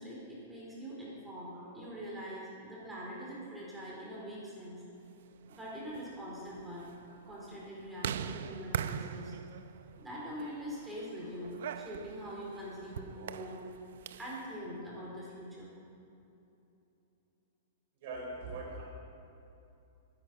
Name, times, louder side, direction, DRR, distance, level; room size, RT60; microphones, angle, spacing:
voice 1, 0.0-4.8 5.5-6.9 7.2-9.3 10.0-11.5 11.8-13.6 14.2-15.7, equal, 5° right, -6 dB, 4.2 m, -43 dB
sound 1, 5.3-14.4, right 8 dB, 70° right, 0.7 m, -42 dB
voice 2, 18.0-18.8, right 2 dB, 50° right, -2 dB, 4.8 m, -41 dB
23.0 x 11.0 x 5.3 m, 2.8 s
hypercardioid pair, 155°, 0 cm